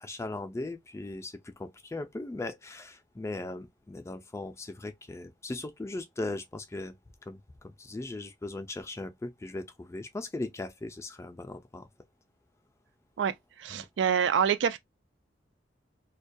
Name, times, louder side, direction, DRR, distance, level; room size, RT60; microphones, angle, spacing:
voice 1, 0.0-7.0 7.2-11.9 13.7-13.9, left 2 dB, 15° left, 0.3 m, -38 dB
voice 2, 13.6-14.8, right 7 dB, 90° right, 0.3 m, -26 dB
2.2 x 2.2 x 2.5 m
head